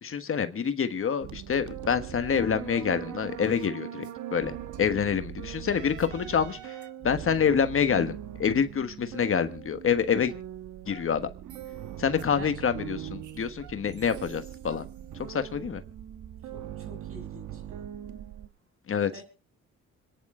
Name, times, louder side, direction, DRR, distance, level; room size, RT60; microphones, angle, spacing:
voice 1, 0.0-6.8 7.0-8.1 8.4-10.3 10.9-11.3 12.0-14.8 15.3-15.8 18.9-19.1, left 7 dB, 45° left, 9 dB, 1.4 m, -27 dB
sound 1, 1.2-18.5, right 11 dB, 75° right, 1.2 m, -41 dB
voice 2, 16.4-17.9 19.1-19.2, right 2 dB, 45° right, 6 dB, 6.1 m, -47 dB
26.0 x 10.0 x 3.7 m, 0.34 s
cardioid pair, 90°, 30 cm